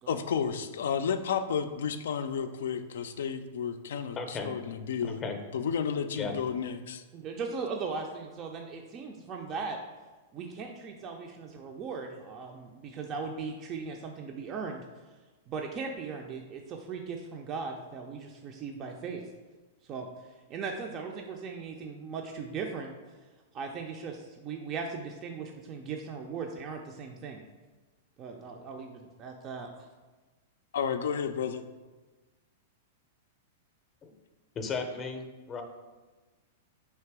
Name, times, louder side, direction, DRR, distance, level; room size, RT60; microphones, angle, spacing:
voice 1, 0.1-5.2 5.5-7.0 30.7-31.6, left 7 dB, 75° left, 9 dB, 0.3 m, -32 dB
voice 2, 4.2-4.5 5.2-5.4 6.1-6.3 34.0-34.1 34.6-35.6, left 4 dB, 25° left, 5 dB, 0.6 m, -35 dB
voice 3, 7.1-9.8 10.3-14.8 15.5-19.2 19.8-20.1 20.5-22.9 23.5-27.4 28.2-29.9, right 5 dB, 35° right, 2 dB, 0.4 m, -38 dB
3.3 x 2.9 x 4.6 m, 1.3 s
hypercardioid pair, 120°, 0 cm